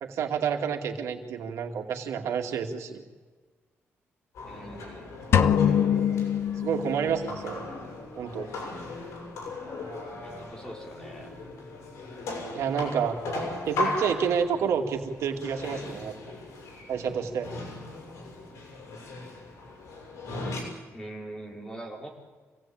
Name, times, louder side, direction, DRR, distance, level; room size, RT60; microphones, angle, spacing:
voice 1, 0.0-3.0 6.6-7.6 8.1-8.5 12.5-13.2 13.7-16.1 16.9-17.5, right 7 dB, 90° right, 4 dB, 2.4 m, -29 dB
sound 1, 4.3-20.6, left 2 dB, 85° left, 7.2 m, -38 dB
voice 2, 4.4-5.2 10.2-11.4 20.9-22.1, right 1 dB, 15° left, 0 dB, 4.7 m, -42 dB
sound 2, 5.3-7.4, left 8 dB, 60° left, 1.1 m, -23 dB
27.0 x 17.5 x 8.8 m, 1.4 s
wide cardioid pair, 165°, 5 cm